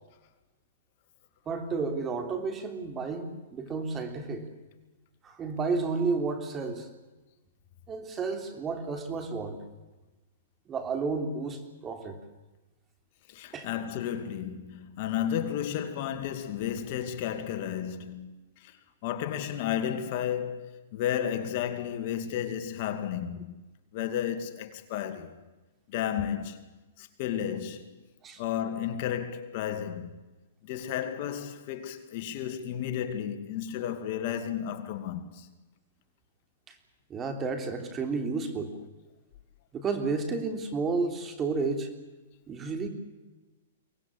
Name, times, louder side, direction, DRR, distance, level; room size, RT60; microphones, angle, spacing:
voice 1, 1.4-4.5 5.2-6.9 7.9-9.6 10.7-12.2 13.5-13.7 28.2-28.4 36.7-36.8 37.1-38.7 39.7-41.9 42.5-42.9, right 4 dB, 20° right, 3.2 m, -31 dB
voice 2, 13.3-23.6 23.9-25.4 25.9-26.7 27.0-27.9 28.4-30.1 30.6-35.5, left 10 dB, 45° left, 2.3 m, -33 dB
24.0 x 19.0 x 8.6 m
hypercardioid pair, 145°, 0 cm